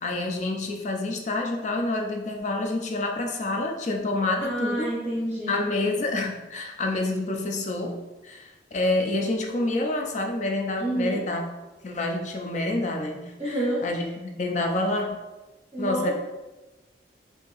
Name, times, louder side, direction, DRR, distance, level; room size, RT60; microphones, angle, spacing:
voice 1, 0.0-4.9 5.5-8.0 8.2-11.5 11.8-15.2 15.8-16.1, left 2 dB, 40° left, 3 dB, 0.4 m, -28 dB
voice 2, 4.4-5.7 10.8-11.2 13.4-13.9 15.7-16.1, right 1 dB, 15° right, -6 dB, 0.7 m, -28 dB
2.8 x 2.6 x 3.8 m, 1.1 s
head